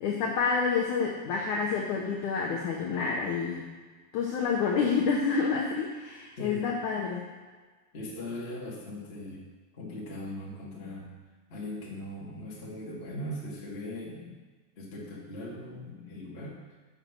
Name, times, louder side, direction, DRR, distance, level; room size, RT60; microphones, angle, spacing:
voice 1, 0.0-3.7 4.1-7.3, left 5 dB, 85° left, -2 dB, 1.7 m, -28 dB
voice 2, 6.4-6.7 7.9-9.4 9.7-11.1 11.5-14.4 14.8-16.8, left 1 dB, 45° left, -5 dB, 0.7 m, -39 dB
7.7 x 6.5 x 6.6 m, 1.4 s
omnidirectional pair, 4.7 m